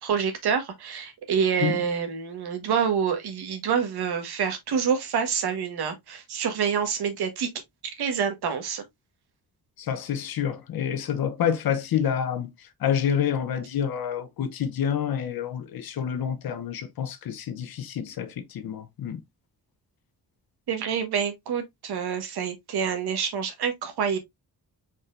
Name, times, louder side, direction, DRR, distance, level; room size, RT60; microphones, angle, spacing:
voice 1, 0.0-7.5 8.0-8.8 20.7-24.2, right 7 dB, 85° right, 1.5 m, -27 dB
voice 2, 9.8-19.2, left 8 dB, 70° left, 0.9 m, -28 dB
4.8 x 4.3 x 2.5 m
wide cardioid pair, 175°, 38 cm